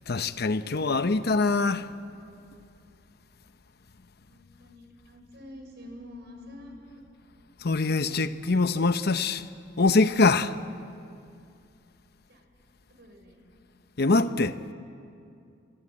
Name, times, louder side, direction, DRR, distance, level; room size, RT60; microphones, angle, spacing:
voice 1, 0.1-1.9 7.6-9.5 9.8-10.6 14.0-14.6, left 3 dB, 55° left, 0.8 m, -24 dB
voice 2, 4.2-7.0 12.3-12.4 12.9-13.4, left 1 dB, 60° right, 5.9 m, -47 dB
26.0 x 24.0 x 8.8 m
head